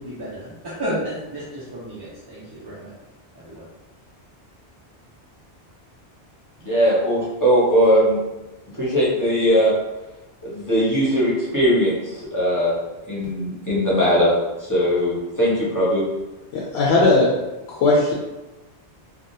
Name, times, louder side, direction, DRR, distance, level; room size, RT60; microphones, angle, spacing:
voice 1, 0.0-3.0 3.3-3.7, equal, 30° right, -9 dB, 0.6 m, -32 dB
voice 2, 6.6-8.2 8.7-9.7 10.4-12.8 13.1-14.3 14.6-16.0, equal, 20° left, -7 dB, 1.1 m, -19 dB
voice 3, 16.5-17.3 17.7-18.1, left 2 dB, 75° left, -3 dB, 0.8 m, -17 dB
3.5 x 2.3 x 2.7 m, 1.0 s
omnidirectional pair, 1.1 m